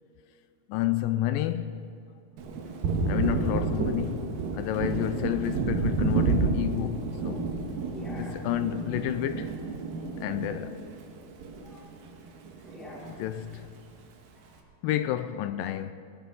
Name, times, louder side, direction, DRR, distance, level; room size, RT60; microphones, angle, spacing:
voice 1, 0.7-1.9 3.1-7.5 8.2-9.5 10.2-10.9 13.1-13.7 14.8-15.9, left 13 dB, 80° left, 2.1 m, -30 dB
Thunder, 2.4-12.1 12.4-13.6, right 4 dB, 70° right, 3.0 m, -30 dB
voice 2, 3.4-3.7 7.9-8.4 10.4-10.8 11.4-11.9 12.6-13.1 14.3-14.7, left 1 dB, ahead, 4.1 m, -46 dB
19.0 x 17.0 x 4.0 m
omnidirectional pair, 4.4 m